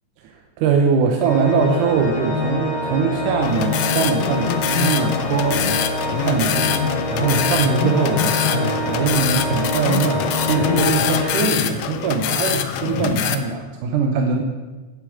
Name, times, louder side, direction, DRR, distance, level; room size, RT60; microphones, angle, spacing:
voice 1, 0.2-5.9 6.2-6.8 7.1-14.4, right 5 dB, 80° right, 3 dB, 2.3 m, -22 dB
Organ, 1.2-12.1, left 2 dB, 50° left, 3.1 m, -25 dB
sound 1, 3.4-13.3, left 9 dB, 80° left, 1.4 m, -24 dB
8.5 x 8.2 x 7.7 m, 1.3 s
omnidirectional pair, 3.7 m